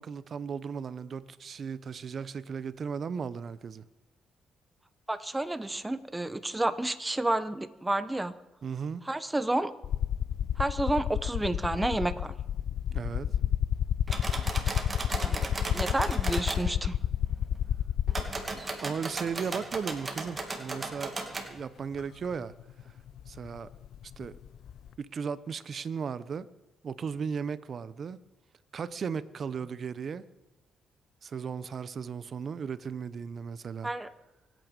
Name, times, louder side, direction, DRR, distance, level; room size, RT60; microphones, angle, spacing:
voice 1, 0.0-3.8 8.6-9.0 12.9-13.3 18.8-22.5 23.3-23.7 24.2-24.3 25.0-26.5 26.8-28.2 28.7-30.2 31.2-33.9, right 6 dB, 50° right, 0.7 m, -36 dB
voice 2, 5.1-8.3 9.1-9.7 10.6-12.3 15.2-17.0 33.8-34.1, right 2 dB, 10° right, 1.0 m, -30 dB
sound 1, 9.8-18.6 19.7-19.8 22.0-22.1 22.3-24.9, left 10 dB, 65° left, 0.6 m, -30 dB
sound 2, 14.1-16.6 18.1-21.5, right 3 dB, 25° right, 2.4 m, -36 dB
24.5 x 9.2 x 5.3 m
cardioid pair, 90°, 0 cm